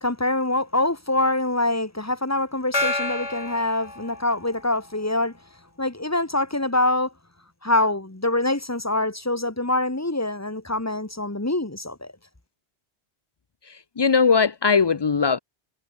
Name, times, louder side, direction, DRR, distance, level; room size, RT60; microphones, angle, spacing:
voice 1, 0.0-5.3 5.8-7.1 7.6-12.1, left 2 dB, 15° left, 1.5 m, -25 dB
Gong, 2.7-4.8, left 2 dB, 85° left, 5.4 m, -29 dB
voice 2, 13.7-15.4, left 5 dB, 35° left, 0.4 m, -20 dB
omnidirectional pair, 1.1 m